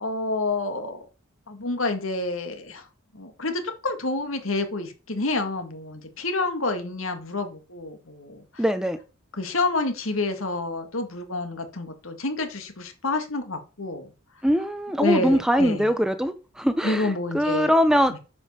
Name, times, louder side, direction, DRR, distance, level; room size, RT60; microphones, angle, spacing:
voice 1, 0.0-1.1 1.5-2.8 3.1-8.6 9.3-14.1 15.0-15.9 16.8-17.7 18.1-18.2, left 2 dB, 75° left, 2.1 m, -28 dB
voice 2, 8.6-9.0 14.4-18.1, equal, 5° right, 0.7 m, -22 dB
9.4 x 5.5 x 6.8 m
head